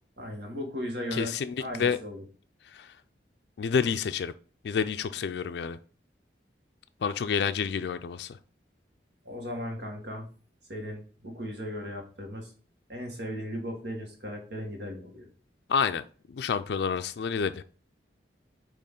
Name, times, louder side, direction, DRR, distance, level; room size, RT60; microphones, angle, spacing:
voice 1, 0.2-2.2 9.2-10.3 10.7-12.5 12.9-15.3, equal, 80° right, 1.7 m, -37 dB
voice 2, 1.1-2.0 2.7-2.9 3.6-4.3 4.6-5.8 7.0-8.4 15.7-17.6, left 6 dB, 75° left, 0.3 m, -29 dB
8.4 x 3.0 x 3.7 m
head